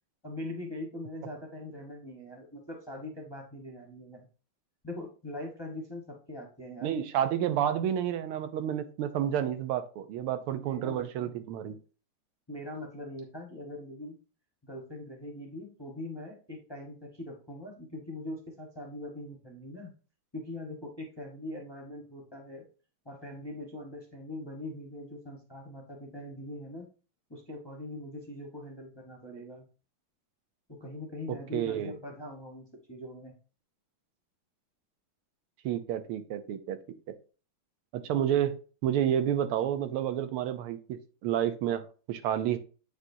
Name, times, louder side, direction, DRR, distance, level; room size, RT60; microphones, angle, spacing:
voice 1, 0.2-4.3 4.8-7.0 10.6-11.3 12.5-14.2 14.6-19.9 20.3-22.6 23.0-26.9 27.3-29.7 30.7-33.4, left 1 dB, 15° left, 0.8 m, -42 dB
voice 2, 6.8-11.8 31.3-31.9 35.6-36.8 37.9-42.6, right 10 dB, 85° right, 1.6 m, -30 dB
8.3 x 5.0 x 2.7 m
omnidirectional pair, 2.4 m